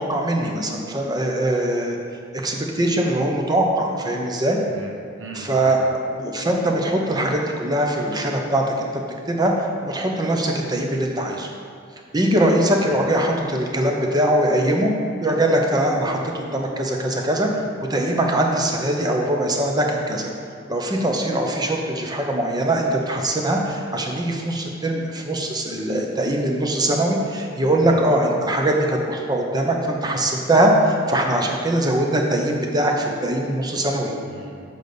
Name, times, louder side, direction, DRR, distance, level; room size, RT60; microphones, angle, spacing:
voice 1, 0.0-2.0 2.3-4.6 5.3-5.8 6.2-9.0 9.3-11.5 12.1-14.9 15.2-17.5 17.9-20.3 20.7-34.1, right 1 dB, 20° right, 1 dB, 0.8 m, -21 dB
voice 2, 4.7-5.9 12.8-13.0 24.5-24.6 27.7-28.0 34.3-34.6, right 2 dB, 80° right, 1 dB, 1.1 m, -39 dB
7.2 x 4.0 x 6.7 m, 2.2 s
head